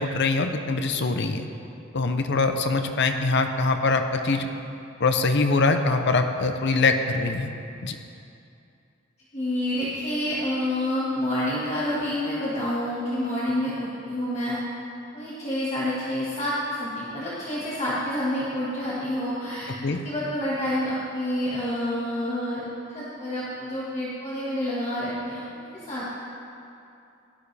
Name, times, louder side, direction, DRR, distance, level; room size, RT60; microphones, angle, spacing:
voice 1, 0.0-1.5 1.9-4.5 5.0-7.5 7.8-8.0 19.8-20.0, left 3 dB, 60° left, 7 dB, 0.7 m, -23 dB
voice 2, 9.3-14.6 15.1-19.7 20.0-26.0, left 1 dB, 35° left, -9 dB, 1.8 m, -28 dB
16.5 x 12.0 x 3.4 m, 2.7 s
head